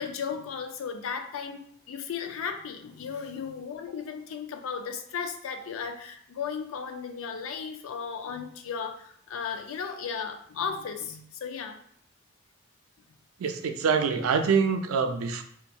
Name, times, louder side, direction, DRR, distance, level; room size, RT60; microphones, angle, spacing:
voice 1, 0.0-11.8, left 6 dB, 80° left, 6 dB, 0.4 m, -35 dB
voice 2, 13.4-15.4, right 5 dB, 90° right, 6 dB, 0.3 m, -25 dB
2.7 x 2.2 x 2.2 m, 0.66 s
head